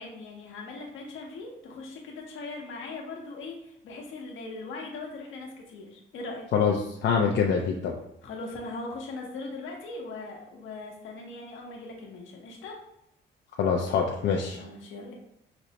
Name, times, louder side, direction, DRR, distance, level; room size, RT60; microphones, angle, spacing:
voice 1, 0.0-6.5 8.2-12.8 14.6-15.1, left 3 dB, 80° left, 0 dB, 0.9 m, -40 dB
voice 2, 6.5-8.0 13.6-14.6, left 6 dB, 65° left, 0 dB, 0.5 m, -25 dB
5.1 x 2.1 x 2.8 m, 0.82 s
cardioid pair, 90°, 20 cm